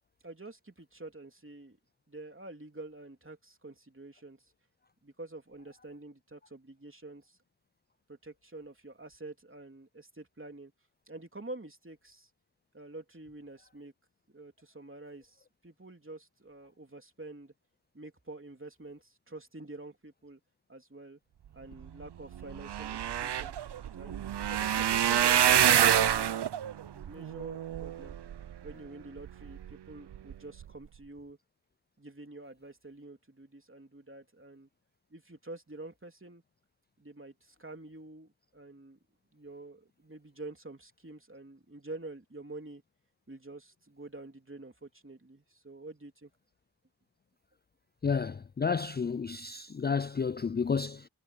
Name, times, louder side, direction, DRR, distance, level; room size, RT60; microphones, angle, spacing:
voice 1, 0.2-1.8 2.1-4.5 5.0-7.4 8.1-10.7 11.1-12.3 12.7-13.9 14.3-17.5 17.9-20.4 20.7-21.2 21.5-23.5 24.0-26.3 26.8-28.2 28.6-31.4 32.0-34.7 35.1-36.4 37.0-39.0 39.3-42.8 43.3-46.3, right 2 dB, 30° right, 3.2 m, -47 dB
sound 1, 22.0-22.1 22.3-28.7 29.3-29.7 30.1-30.3 30.6-30.7, right 10 dB, 80° right, 0.6 m, -27 dB
voice 2, 48.0-51.1, left 5 dB, 25° left, 0.4 m, -31 dB
cardioid pair, 40°, 40 cm